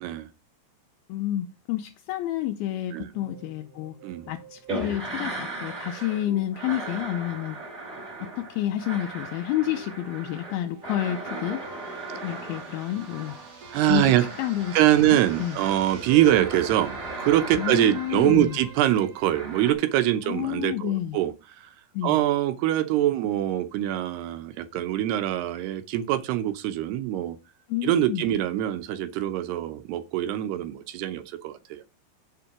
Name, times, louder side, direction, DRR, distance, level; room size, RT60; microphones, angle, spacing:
voice 1, 1.1-4.0 4.3-7.6 8.4-11.6 12.2-13.4 13.9-15.6 17.6-18.6 20.2-21.2 21.9-22.2 27.7-28.2, left 13 dB, 80° left, 2.3 m, -29 dB
sound 1, 3.1-20.2, right 5 dB, 65° right, 0.9 m, -45 dB
sound 2, 4.7-6.3 6.5-15.8 16.2-18.5 19.2-19.7, right 2 dB, 15° right, 1.8 m, -38 dB
voice 2, 13.7-14.2 14.7-21.3 21.6-21.7 22.0-27.4 27.8-31.8, right 13 dB, 80° right, 2.8 m, -24 dB
7.0 x 5.8 x 5.9 m
omnidirectional pair, 4.7 m